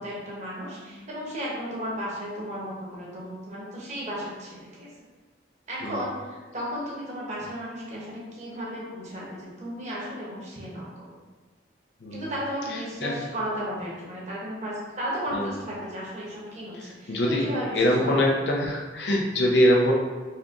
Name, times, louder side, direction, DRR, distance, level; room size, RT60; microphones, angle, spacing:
voice 1, 0.0-4.9 5.7-11.2 12.1-18.3, equal, 40° right, -5 dB, 1.0 m, -34 dB
voice 2, 17.1-19.9, equal, 65° left, -1 dB, 0.6 m, -23 dB
4.2 x 2.9 x 2.6 m, 1.3 s
head